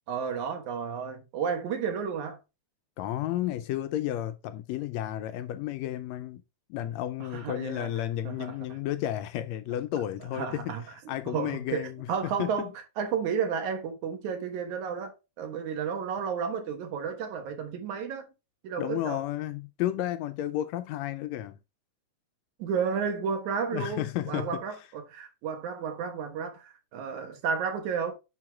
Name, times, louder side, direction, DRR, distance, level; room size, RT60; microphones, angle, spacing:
voice 1, 0.1-2.4 7.2-7.9 8.2-8.6 10.3-10.8 11.3-15.1 15.4-18.3 18.6-19.2 22.6-28.1, right 6 dB, 80° right, 2.7 m, -32 dB
voice 2, 3.0-6.4 6.7-10.7 11.1-12.7 18.8-21.6 23.7-24.6, left 13 dB, 80° left, 1.7 m, -32 dB
11.0 x 4.8 x 2.3 m
omnidirectional pair, 3.3 m